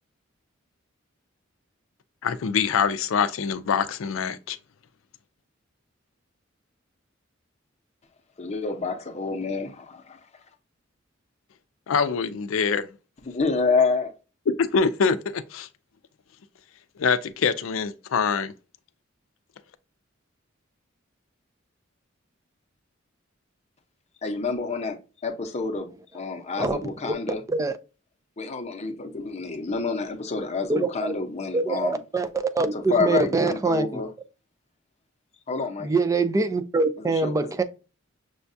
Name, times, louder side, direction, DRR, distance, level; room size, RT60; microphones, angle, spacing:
voice 1, 2.2-4.6 11.9-12.9 14.5-15.7 17.0-18.5, left 5 dB, 80° left, 0.4 m, -24 dB
voice 2, 8.4-10.2 13.3-14.1 24.2-25.0 25.2-27.4 28.4-32.0 32.7-34.1 35.5-35.9 37.0-37.5, left 4 dB, 35° left, 0.7 m, -28 dB
voice 3, 26.6-27.1 27.5-27.8 30.7-31.1 31.5-34.0 35.8-37.6, right 3 dB, 15° right, 0.3 m, -24 dB
6.2 x 2.3 x 2.6 m
head